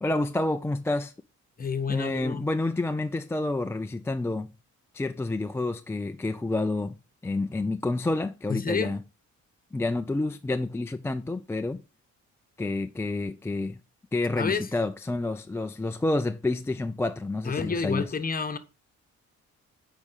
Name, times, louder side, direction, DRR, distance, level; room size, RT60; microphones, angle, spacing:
voice 1, 0.0-1.1 1.9-4.5 4.9-6.9 7.2-9.0 9.7-11.8 12.6-13.8 14.1-18.0, left 2 dB, 10° left, 0.3 m, -29 dB
voice 2, 1.6-2.4 8.5-8.9 14.4-14.7 17.4-18.6, left 5 dB, 30° left, 1.1 m, -29 dB
8.5 x 5.1 x 4.1 m
cardioid pair, 90°, 30 cm